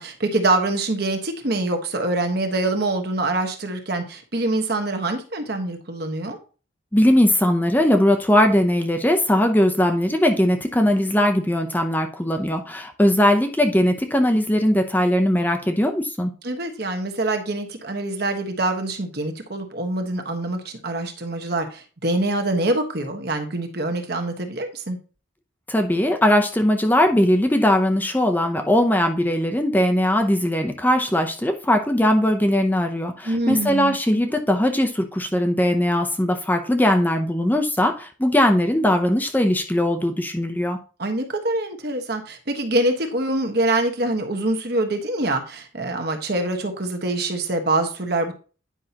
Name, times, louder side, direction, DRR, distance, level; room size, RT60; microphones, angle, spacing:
voice 1, 0.0-6.4 16.4-25.0 33.2-34.0 41.0-48.3, right 2 dB, 55° right, 5 dB, 1.2 m, -25 dB
voice 2, 6.9-16.3 25.7-40.8, left 1 dB, 10° left, 5 dB, 0.6 m, -20 dB
9.8 x 5.5 x 2.9 m, 0.36 s
head